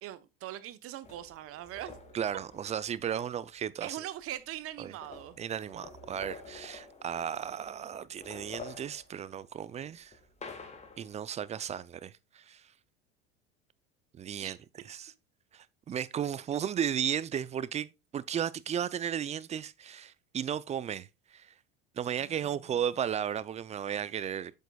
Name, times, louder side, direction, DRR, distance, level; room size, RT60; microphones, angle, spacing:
voice 1, 0.0-2.0 3.8-5.4 14.4-14.6 22.2-22.8, right 13 dB, 50° right, 0.9 m, -42 dB
sound 1, 1.0-3.2 4.2-4.3 4.6-7.7 8.1-11.2, left 4 dB, 20° left, 1.7 m, -49 dB
voice 2, 2.1-4.0 4.8-4.9 5.4-10.1 11.0-12.6 14.1-14.6 14.9-15.1 15.5-21.1 21.3-21.5 22.0-24.5, right 9 dB, 25° right, 0.4 m, -34 dB
8.4 x 6.5 x 2.3 m
hypercardioid pair, 90°, 30 cm